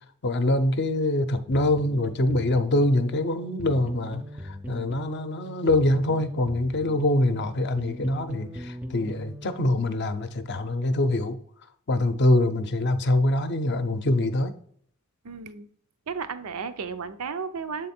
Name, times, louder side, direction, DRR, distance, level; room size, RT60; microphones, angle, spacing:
voice 1, 0.2-11.4 11.9-14.5, left 1 dB, 50° left, 0.6 m, -24 dB
sound 1, 1.5-10.0, equal, 5° right, 0.4 m, -40 dB
voice 2, 15.2-15.7 16.1-17.9, right 5 dB, 90° right, 0.6 m, -33 dB
7.5 x 3.8 x 4.3 m
head